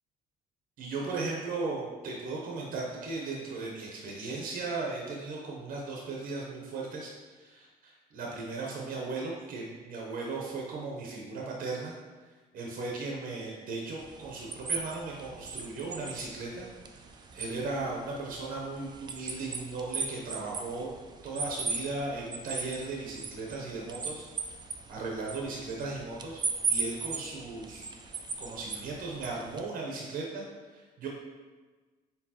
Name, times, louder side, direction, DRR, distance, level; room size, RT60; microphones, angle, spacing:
voice 1, 0.8-11.9 12.3-16.7 17.0-20.9 21.2-24.3 24.9-30.4 30.7-31.1, right 3 dB, 55° right, -2 dB, 0.7 m, -37 dB
sound 1, 14.0-29.6, right 4 dB, 25° right, 0.4 m, -38 dB
4.4 x 3.5 x 2.9 m, 1.3 s
cardioid pair, 110°, 17 cm